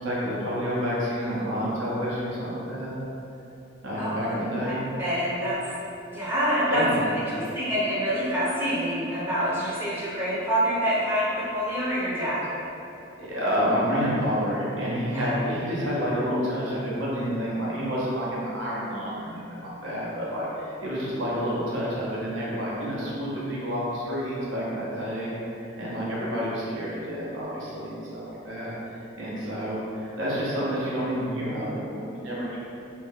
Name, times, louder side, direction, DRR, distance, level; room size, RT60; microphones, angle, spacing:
voice 1, 0.0-3.0 3.8-4.8 6.7-7.4 13.2-28.7 29.2-32.6, equal, 70° right, -7 dB, 0.7 m, -29 dB
voice 2, 3.9-4.3 4.6-4.7 5.0-5.6 6.1-6.8 7.3-12.5 15.1-15.3, equal, 10° right, -10 dB, 0.6 m, -26 dB
2.6 x 2.1 x 3.3 m, 2.8 s
head